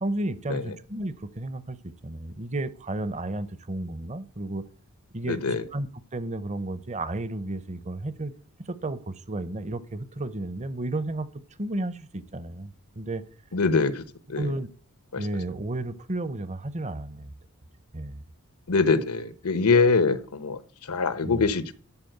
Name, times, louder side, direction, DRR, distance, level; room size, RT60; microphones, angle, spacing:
voice 1, 0.0-4.7 5.1-5.4 5.7-5.9 6.1-8.3 8.7-11.3 11.6-13.2 14.4-14.7 15.2-17.3 17.9-18.2 21.2-21.4, right 2 dB, 30° right, 0.7 m, -32 dB
voice 2, 5.2-5.6 13.5-14.5 15.1-15.3 18.7-21.7, left 4 dB, 85° left, 1.0 m, -24 dB
13.0 x 4.3 x 7.9 m
head